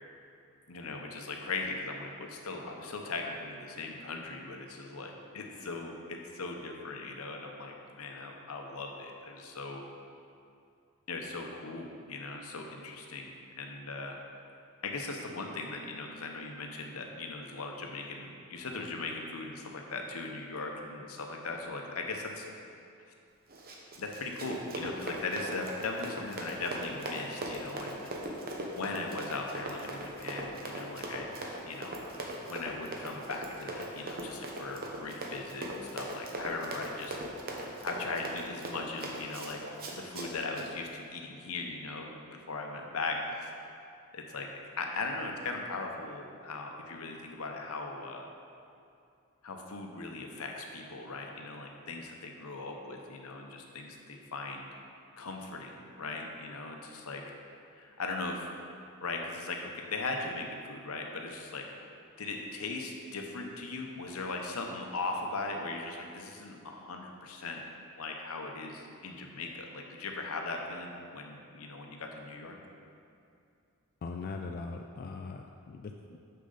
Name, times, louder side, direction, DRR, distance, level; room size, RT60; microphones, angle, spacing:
voice 1, 0.7-9.8 11.1-14.2 14.8-22.5 24.0-28.1 28.7-31.3 31.7-32.0 32.4-37.2 37.6-39.6 39.9-43.5 44.1-44.5 44.8-48.2 49.4-54.7 55.2-57.2 57.7-58.5 59.0-61.6 62.2-67.6 68.0-72.6, left 3 dB, 75° left, 2 dB, 0.8 m, -39 dB
Run, 23.5-40.7, right 1 dB, 45° right, 0.9 m, -40 dB
voice 2, 74.0-76.2, left 4 dB, 45° left, 3 dB, 0.3 m, -40 dB
6.7 x 6.4 x 4.0 m, 2.5 s
head